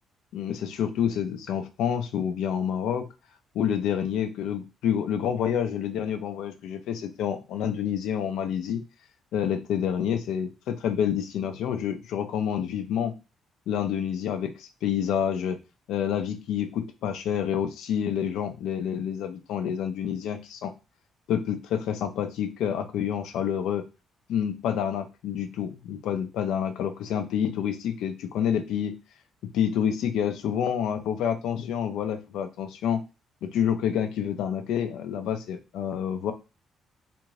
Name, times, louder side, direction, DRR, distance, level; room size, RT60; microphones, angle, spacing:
voice 1, 0.3-3.1 3.5-8.8 9.3-13.2 13.7-15.6 15.9-20.7 21.3-23.8 24.3-28.9 29.4-33.0 33.4-36.3, left 9 dB, 85° left, 8 dB, 0.4 m, -28 dB
2.6 x 2.5 x 3.0 m, 0.29 s
cardioid pair, 90°, 0 cm